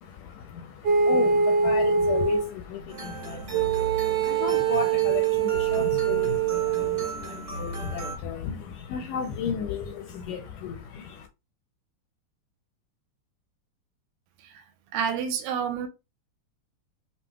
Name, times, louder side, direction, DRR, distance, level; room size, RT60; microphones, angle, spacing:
voice 1, 0.0-11.3, left 7 dB, 80° left, 1.9 m, -34 dB
sound 1, 0.8-2.5 3.5-7.1, right 6 dB, 65° right, 2.6 m, -23 dB
sound 2, 2.9-8.2, right 2 dB, 35° right, 1.2 m, -37 dB
voice 2, 14.9-15.9, right 7 dB, 80° right, 2.3 m, -28 dB
6.9 x 2.8 x 2.2 m
omnidirectional pair, 4.1 m